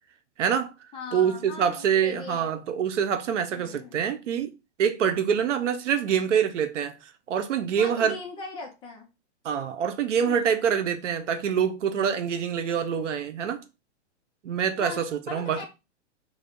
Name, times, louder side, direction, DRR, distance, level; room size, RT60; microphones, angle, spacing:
voice 1, 0.4-0.7 1.1-4.5 4.8-8.2 9.4-13.6 14.4-15.6, right 8 dB, 90° right, 0.7 m, -25 dB
voice 2, 0.9-2.6 3.5-4.0 7.8-9.1 10.3-10.6 14.8-15.6, left 4 dB, 15° left, 0.7 m, -39 dB
3.2 x 2.3 x 3.6 m
hypercardioid pair, 155°, 35 cm